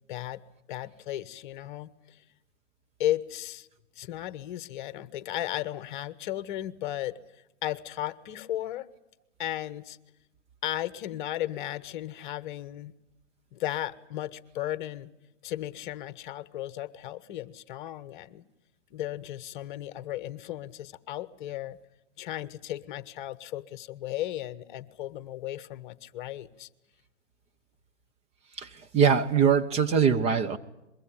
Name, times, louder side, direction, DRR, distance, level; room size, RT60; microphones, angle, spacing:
voice 1, 0.1-0.4 0.7-2.2 3.0-3.7 4.0-7.2 7.6-8.9 9.4-10.0 10.6-12.9 13.5-15.1 15.4-18.4 18.9-21.8 22.2-26.7, left 13 dB, 40° left, 16 dB, 1.3 m, -35 dB
voice 2, 28.6-30.6, right 7 dB, 15° right, 7 dB, 0.9 m, -23 dB
24.0 x 22.5 x 8.8 m, 0.94 s
hypercardioid pair, 130°, 37 cm